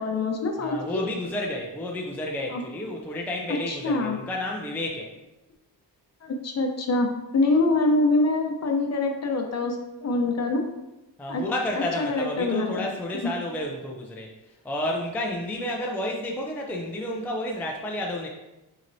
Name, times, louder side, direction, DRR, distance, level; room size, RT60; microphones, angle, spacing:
voice 1, 0.0-1.0 2.5-2.6 3.7-4.2 6.2-7.1 7.3-9.8 10.0-10.6 11.3-11.4 12.0-12.9, left 2 dB, 35° left, 2 dB, 0.7 m, -24 dB
voice 2, 0.6-5.1 11.2-14.3 14.6-18.3, left 1 dB, 5° left, -1 dB, 0.4 m, -31 dB
6.1 x 2.8 x 2.6 m, 0.99 s
cardioid pair, 120°, 43 cm